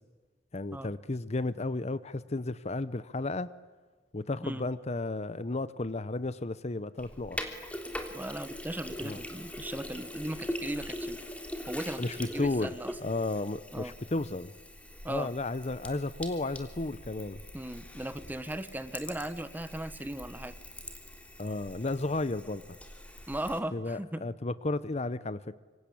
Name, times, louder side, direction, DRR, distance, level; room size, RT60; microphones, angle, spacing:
voice 1, 0.5-3.5 4.1-7.4 9.0-9.2 12.0-12.7 13.0-14.5 15.1-17.4 21.4-22.6 23.7-25.6, left 2 dB, 40° left, 16 dB, 0.8 m, -33 dB
Sink (filling or washing), 7.0-23.6, left 1 dB, 10° left, 3.2 m, -42 dB
voice 2, 8.1-11.2 11.7-12.9 13.7-13.9 15.0-15.3 17.5-20.5 23.3-24.2, right 1 dB, 10° right, 12 dB, 1.3 m, -37 dB
26.0 x 25.0 x 8.7 m, 1.4 s
head